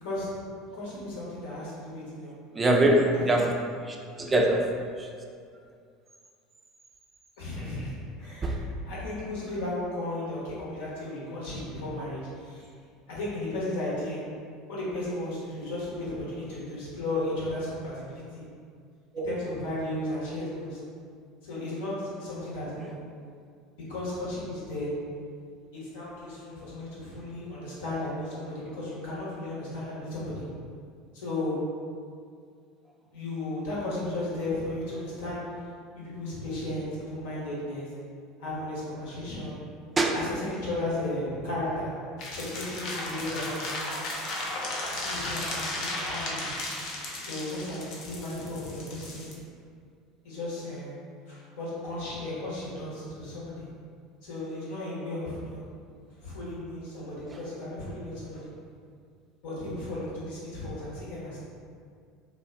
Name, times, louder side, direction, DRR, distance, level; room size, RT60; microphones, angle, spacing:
voice 1, 0.7-2.3 3.2-3.4 7.4-7.9 8.2-12.6 13.1-14.2 14.7-18.4 19.2-20.8 21.4-22.9 23.9-24.9 25.7-30.4 31.1-31.6 33.1-35.4 35.9-37.9 38.4-39.6 40.1-41.9 42.3-44.1 44.8-46.5 47.2-49.3 50.2-51.0 51.3-53.7 54.2-55.6 56.2-58.5 59.4-61.4, left 1 dB, 75° left, -8 dB, 0.8 m, -35 dB
voice 2, 2.5-3.5 3.8-5.1 8.4-8.5 19.1-19.3 40.0-40.1, right 1 dB, 25° right, 0 dB, 0.3 m, -23 dB
sound 1, 42.2-49.3, left 2 dB, 60° left, 0.5 m, -35 dB
2.4 x 2.1 x 2.4 m, 2.2 s
hypercardioid pair, 80°, 0 cm